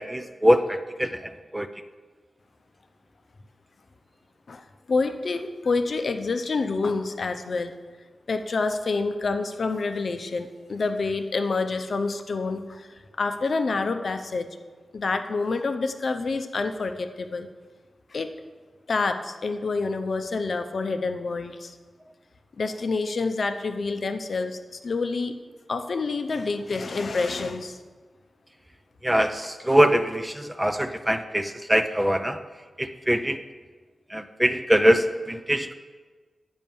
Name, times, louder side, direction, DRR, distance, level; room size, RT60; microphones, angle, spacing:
voice 1, 0.0-1.7 29.0-32.4 32.8-33.4 34.1-35.7, equal, 10° right, 10 dB, 0.4 m, -23 dB
voice 2, 4.5-7.7 8.3-12.9 13.2-14.5 14.9-17.5 18.1-18.3 18.9-21.7 22.6-24.6 24.8-25.3 25.7-27.8, left 3 dB, 55° left, 8 dB, 0.7 m, -27 dB
9.1 x 5.6 x 7.0 m, 1.4 s
wide cardioid pair, 120°, 0 cm